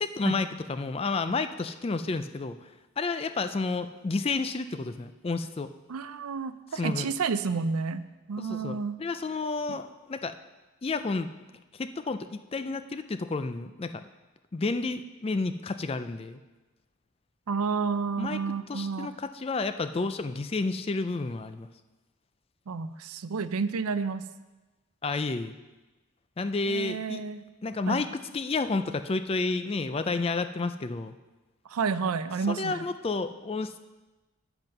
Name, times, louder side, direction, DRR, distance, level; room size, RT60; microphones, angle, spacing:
voice 1, 0.0-2.6 3.0-5.7 6.7-7.1 8.4-10.3 10.8-11.3 11.7-14.1 14.5-16.4 18.2-18.4 18.7-21.7 25.0-25.6 26.4-27.2 27.6-31.2 32.5-33.8, left 3 dB, 25° left, 11 dB, 0.3 m, -31 dB
voice 2, 5.9-9.0 17.5-19.1 22.7-24.2 26.7-27.4 27.9-28.0 31.7-32.8, right 5 dB, 90° right, 13 dB, 0.5 m, -30 dB
9.0 x 7.8 x 5.4 m, 1.2 s
head